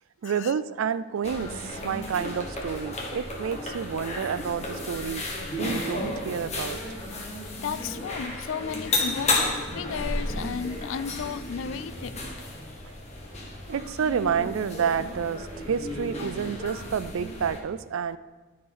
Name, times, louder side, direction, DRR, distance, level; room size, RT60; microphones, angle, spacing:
voice 1, 0.2-5.3 5.6-6.8 13.7-18.2, right 7 dB, 70° right, 15 dB, 0.3 m, -29 dB
sound 1, 1.2-17.6, left 2 dB, 30° left, 1.4 m, -33 dB
voice 2, 7.6-12.3 16.2-16.3, left 7 dB, 60° left, 14 dB, 0.3 m, -34 dB
13.5 x 4.8 x 4.2 m, 1.3 s
head